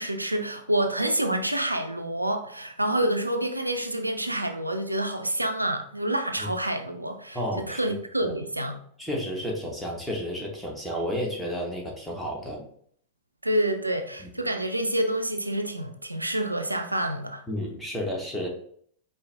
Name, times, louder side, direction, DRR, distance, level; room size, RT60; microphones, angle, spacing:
voice 1, 0.0-8.8 13.4-17.4, right 1 dB, 85° right, 0.4 m, -28 dB
voice 2, 7.3-7.8 8.2-8.3 9.0-12.6 14.2-14.3 17.5-18.5, equal, ahead, 1.2 m, -31 dB
4.6 x 2.6 x 3.3 m
figure-of-eight pair, 90°, 0 cm